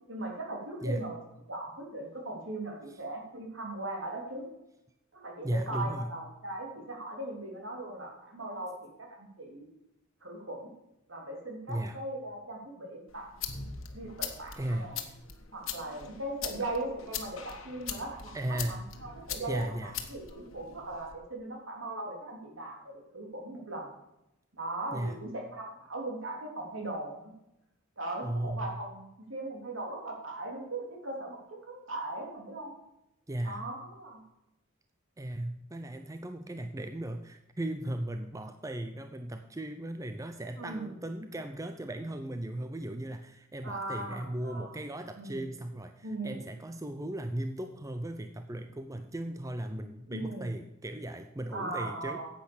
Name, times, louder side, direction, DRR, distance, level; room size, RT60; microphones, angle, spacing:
voice 1, 0.1-1.2 1.5-4.5 5.1-9.7 10.2-10.7 11.1-13.3 13.9-15.0 15.5-23.9 24.5-27.3 28.0-31.4 31.6-32.7 33.4-34.2 40.6-41.0 43.6-44.8 45.2-45.5 46.0-46.5 50.1-50.6 51.5-52.3, right 2 dB, 65° right, 0 dB, 3.5 m, -39 dB
voice 2, 5.4-6.1 11.7-12.0 14.6-14.9 18.3-18.9 19.5-20.0 24.9-25.2 28.2-28.7 33.3-33.7 35.2-52.2, right 1 dB, 15° right, 7 dB, 0.6 m, -36 dB
sound 1, 13.1-21.1, left 8 dB, 75° left, 1.5 m, -41 dB
10.0 x 8.4 x 7.1 m, 0.87 s
head